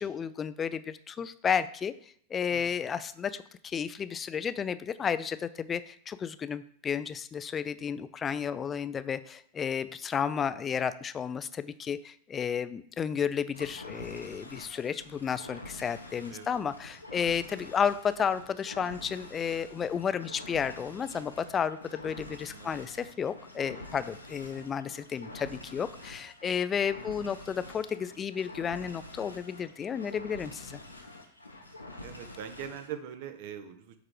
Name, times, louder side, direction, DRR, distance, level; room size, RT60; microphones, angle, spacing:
voice 1, 0.0-1.9 2.3-30.8, left 7 dB, 20° left, 14 dB, 0.4 m, -32 dB
voice 2, 2.5-3.0 16.3-16.6 22.5-22.8 27.0-27.3 32.0-34.0, right 9 dB, 50° right, 9 dB, 0.9 m, -43 dB
sound 1, 13.5-32.9, left 2 dB, 85° left, 1.0 m, -47 dB
8.8 x 3.7 x 4.7 m, 0.63 s
figure-of-eight pair, 90°, 0 cm